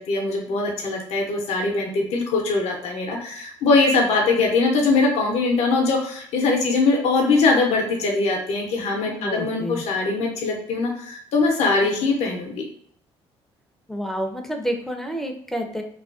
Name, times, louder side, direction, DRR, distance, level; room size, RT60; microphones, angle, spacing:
voice 1, 0.0-12.7, left 3 dB, 75° left, 0 dB, 0.6 m, -22 dB
voice 2, 9.2-9.8 13.9-15.8, equal, 5° left, 4 dB, 0.4 m, -29 dB
2.3 x 2.2 x 2.4 m, 0.64 s
supercardioid pair, 75°, 11 cm